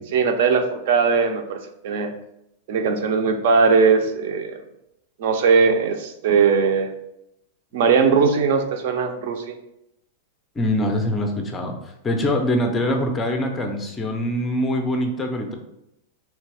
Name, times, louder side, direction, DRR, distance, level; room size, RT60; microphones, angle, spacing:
voice 1, 0.1-2.1 2.7-4.6 5.2-6.9 7.7-9.6, right 5 dB, 50° right, 6 dB, 0.5 m, -19 dB
voice 2, 10.6-15.6, left 1 dB, 10° left, 4 dB, 0.5 m, -24 dB
3.3 x 3.3 x 4.7 m, 0.83 s
supercardioid pair, 175°, 0 cm